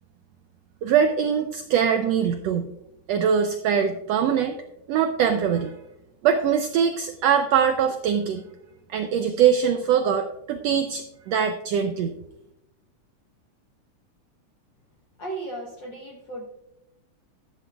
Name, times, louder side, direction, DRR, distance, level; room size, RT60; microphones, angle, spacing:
voice 1, 0.8-2.7 3.1-4.6 4.9-5.8 6.2-8.4 8.9-12.1, right 7 dB, 85° right, 7 dB, 1.5 m, -22 dB
voice 2, 15.2-16.5, right 2 dB, 55° left, 0 dB, 1.3 m, -35 dB
12.5 x 12.0 x 2.4 m, 0.85 s
omnidirectional pair, 3.6 m